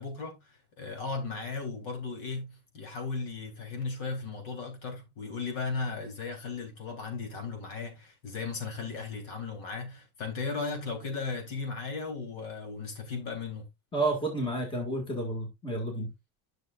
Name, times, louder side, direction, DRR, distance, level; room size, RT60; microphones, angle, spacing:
voice 1, 0.0-13.6, left 4 dB, 60° left, 3.5 m, -36 dB
voice 2, 13.9-16.1, right 2 dB, 15° left, 1.9 m, -31 dB
11.5 x 6.4 x 2.4 m
cardioid pair, 165°, 39 cm